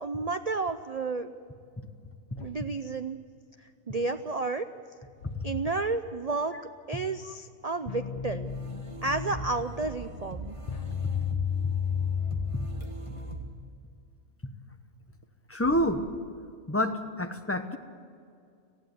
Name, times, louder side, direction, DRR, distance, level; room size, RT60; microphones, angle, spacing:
voice 1, 0.0-1.3 2.4-3.2 3.9-4.7 5.4-6.5 6.9-8.5 9.0-10.6, right 3 dB, 55° right, 9 dB, 0.4 m, -31 dB
Thump thud, 2.3-2.8 5.2-5.9 8.1-8.6 10.9-11.3 13.2-13.8 15.6-16.6, left 6 dB, 60° left, 1.2 m, -49 dB
sound 1, 7.9-13.5, left 7 dB, 75° left, 0.3 m, -33 dB
sound 2, 8.4-13.4, right 2 dB, 25° right, 1.8 m, -41 dB
voice 2, 15.5-16.0 16.7-17.8, left 1 dB, 10° left, 7 dB, 0.9 m, -28 dB
19.0 x 15.0 x 9.4 m, 2.3 s
omnidirectional pair, 1.4 m